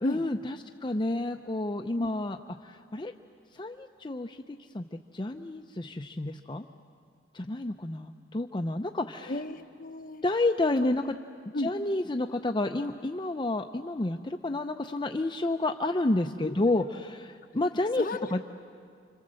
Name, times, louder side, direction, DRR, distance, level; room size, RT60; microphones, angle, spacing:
voice 1, 0.0-3.1 3.5-4.8 5.1-6.7 7.3-9.4 10.2-11.0 11.6-18.4, left 2 dB, 25° left, 5 dB, 0.6 m, -30 dB
voice 2, 9.3-10.2 10.8-10.9 11.5-11.7 16.4-16.9 18.0-18.4, left 1 dB, 50° left, 4 dB, 1.3 m, -35 dB
30.0 x 26.0 x 7.7 m, 2.2 s
head